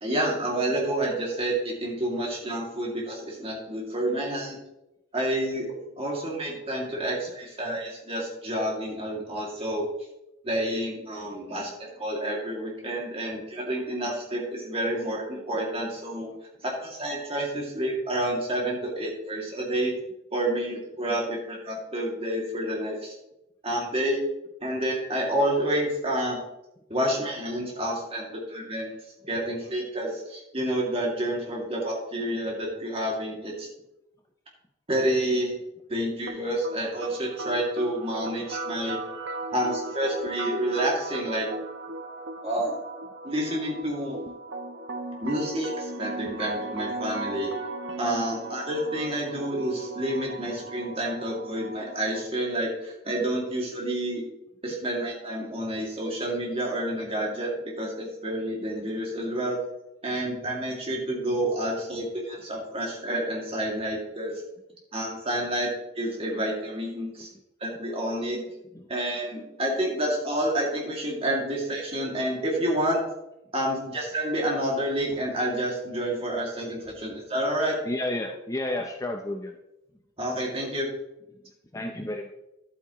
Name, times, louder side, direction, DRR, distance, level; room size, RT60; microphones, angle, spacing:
voice 1, 0.0-4.6 5.1-9.9 10.4-16.3 16.6-20.0 20.3-23.2 23.6-24.2 24.6-26.4 26.9-28.9 29.3-33.7 34.9-35.6 35.9-39.0 39.5-41.5 42.4-42.8 43.2-44.2 45.2-47.5 48.0-54.2 54.6-59.6 60.0-64.4 64.9-65.7 66.0-67.3 67.6-68.4 68.9-73.0 73.5-77.8 80.2-80.9, right 1 dB, 30° right, -2 dB, 2.2 m, -29 dB
sound 1, 36.3-52.3, right 2 dB, 60° right, 0.8 m, -37 dB
voice 2, 77.8-79.6 81.4-82.3, left 1 dB, 15° left, 3 dB, 0.5 m, -32 dB
11.5 x 8.5 x 3.0 m, 0.90 s
head